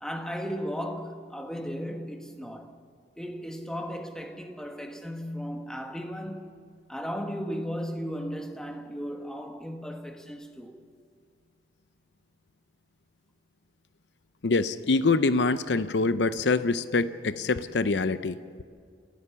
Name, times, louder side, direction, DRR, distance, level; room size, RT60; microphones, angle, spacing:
voice 1, 0.0-2.7 3.1-6.5 6.9-10.8, equal, 5° left, 1.3 m, -35 dB
voice 2, 14.4-18.4, left 3 dB, 80° left, 0.7 m, -25 dB
27.5 x 14.5 x 7.0 m
head